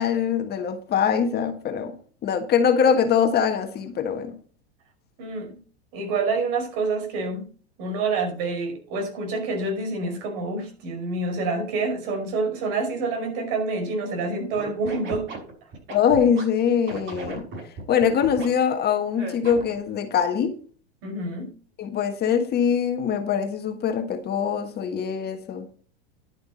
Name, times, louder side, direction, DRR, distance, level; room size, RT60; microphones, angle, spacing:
voice 1, 0.0-1.9 2.2-4.3 15.9-20.5 21.8-25.7, left 7 dB, 30° left, 1.5 m, -23 dB
voice 2, 5.2-5.6 5.9-7.5 7.8-15.3 21.0-21.5, right 3 dB, 60° right, 5.4 m, -27 dB
Scratching (performance technique), 14.5-16.4 16.9-18.5 19.1-19.8, right 3 dB, 40° right, 6.3 m, -36 dB
11.0 x 9.4 x 4.3 m
supercardioid pair, 125°, 32 cm